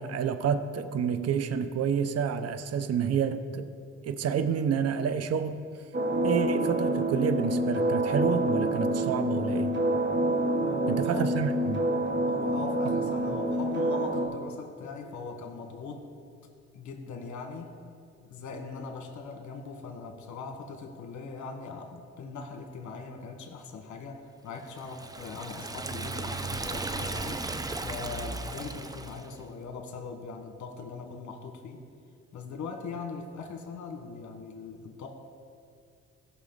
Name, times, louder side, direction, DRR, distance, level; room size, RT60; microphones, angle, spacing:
voice 1, 0.0-3.7 4.0-5.6 6.2-9.7 10.9-11.8 12.8-13.0, right 7 dB, 55° right, 11 dB, 0.7 m, -29 dB
sound 1, 5.9-14.3, right 1 dB, 35° right, 1.4 m, -27 dB
voice 2, 10.6-11.3 12.2-16.1 16.7-17.8 18.3-27.5 27.8-31.8 32.3-35.1, left 4 dB, 70° left, 3 dB, 1.5 m, -40 dB
Liquid, 24.7-29.4, right 3 dB, 15° right, 0.5 m, -36 dB
17.0 x 6.1 x 4.0 m, 2.3 s
cardioid pair, 90°, 30 cm